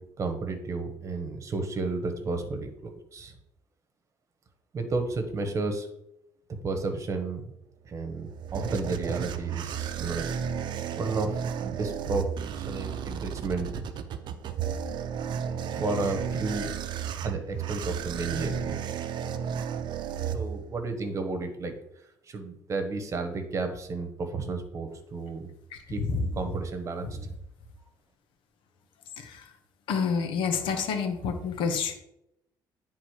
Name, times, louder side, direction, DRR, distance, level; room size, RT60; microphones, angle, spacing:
voice 1, 0.2-3.3 4.7-5.9 6.6-7.5 7.8-10.2 11.0-13.9 15.6-16.7 17.2-18.8 20.3-21.7 22.3-25.5 25.9-26.0 26.4-27.2, right 3 dB, 35° right, 6 dB, 1.2 m, -32 dB
sound 1, 7.9-20.9, right 8 dB, 60° right, 0.6 m, -33 dB
voice 2, 25.7-26.3 27.0-27.2 29.2-29.5 29.9-31.9, left 5 dB, 80° left, 6 dB, 1.2 m, -29 dB
9.6 x 3.7 x 4.9 m, 0.82 s
cardioid pair, 120°, 9 cm